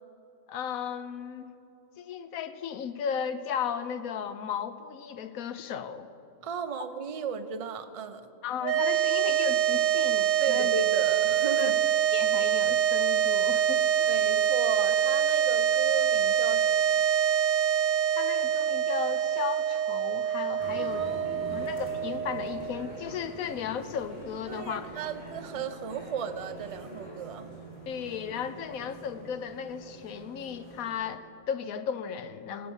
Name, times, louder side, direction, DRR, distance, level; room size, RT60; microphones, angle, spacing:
voice 1, 0.5-1.5 2.0-6.1 8.4-10.7 11.6-11.7 12.1-14.1 18.2-21.1 21.5-25.0 27.9-32.7, left 7 dB, 85° left, 11 dB, 1.2 m, -35 dB
voice 2, 6.4-8.3 10.4-11.8 14.1-16.8 20.8-21.7 24.5-27.5, right 6 dB, 40° right, 9 dB, 0.5 m, -35 dB
sound 1, 8.6-23.0, right 9 dB, 75° right, 1.0 m, -25 dB
sound 2, 20.6-30.9, right 1 dB, 60° left, 4.0 m, -45 dB
17.0 x 8.6 x 7.1 m, 2.9 s
omnidirectional pair, 1.4 m